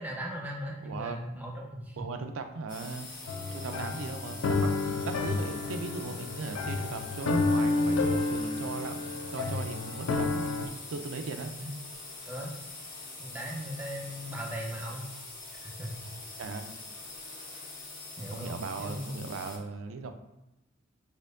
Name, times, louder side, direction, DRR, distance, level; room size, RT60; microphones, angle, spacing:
voice 1, 0.0-2.1 11.6-11.7 12.3-12.5 13.2-15.1 15.5-15.9 18.2-19.3, equal, 10° right, -3 dB, 0.7 m, -38 dB
voice 2, 0.8-1.2 2.0-3.1 3.5-11.5 16.4-16.7 18.3-20.1, right 4 dB, 90° right, 7 dB, 0.4 m, -38 dB
sound 1, 2.7-19.6, left 3 dB, 40° left, 0.7 m, -44 dB
sound 2, 3.3-10.7, left 3 dB, 80° left, 0.3 m, -30 dB
4.3 x 2.6 x 2.4 m, 0.92 s
head